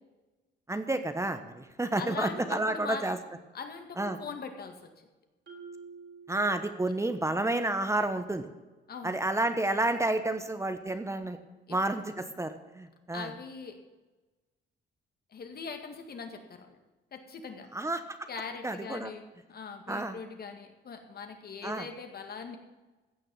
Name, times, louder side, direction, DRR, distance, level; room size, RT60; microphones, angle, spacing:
voice 1, 0.7-3.2 4.0-4.2 6.3-8.5 9.0-11.4 11.7-13.3 17.7-18.0 18.6-19.1 19.9-20.2 21.6-21.9, right 2 dB, 15° right, 9 dB, 1.0 m, -30 dB
voice 2, 2.0-3.0 3.5-4.8 8.9-9.2 11.7-11.8 13.1-13.8 15.3-16.8 17.1-17.7 18.3-22.6, left 5 dB, 50° left, 5 dB, 2.0 m, -41 dB
Marimba xylophone, 5.5-7.2, right 5 dB, 60° right, 3.7 m, -49 dB
15.5 x 6.4 x 7.5 m, 1.2 s
cardioid pair, 90°, 20 cm